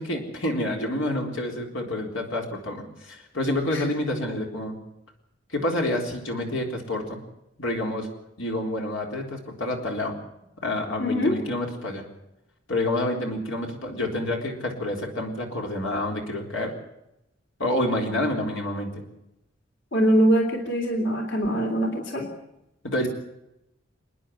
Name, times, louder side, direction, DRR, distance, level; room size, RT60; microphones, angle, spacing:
voice 1, 0.0-4.8 5.5-7.2 7.6-8.1 8.4-10.1 10.6-12.0 12.7-16.7 17.6-19.0 22.8-23.1, left 1 dB, 85° left, 2 dB, 3.8 m, -28 dB
voice 2, 11.0-11.4 19.9-22.3, equal, 65° left, 3 dB, 3.3 m, -23 dB
28.0 x 10.0 x 9.9 m, 0.86 s
head